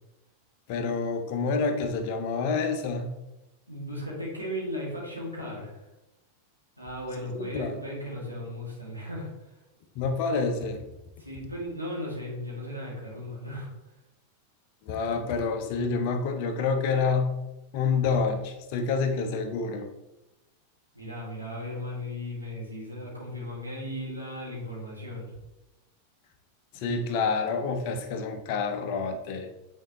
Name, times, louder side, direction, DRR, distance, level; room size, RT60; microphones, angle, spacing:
voice 1, 0.7-3.1 7.3-7.8 9.9-10.8 14.8-17.3 17.7-19.9 26.7-29.5, left 4 dB, 45° left, 6 dB, 0.9 m, -28 dB
voice 2, 3.7-5.8 6.8-9.3 11.2-13.7 20.9-25.3, left 1 dB, 90° right, -5 dB, 2.3 m, -36 dB
8.9 x 4.5 x 3.0 m, 0.96 s
figure-of-eight pair, 90°, 0 cm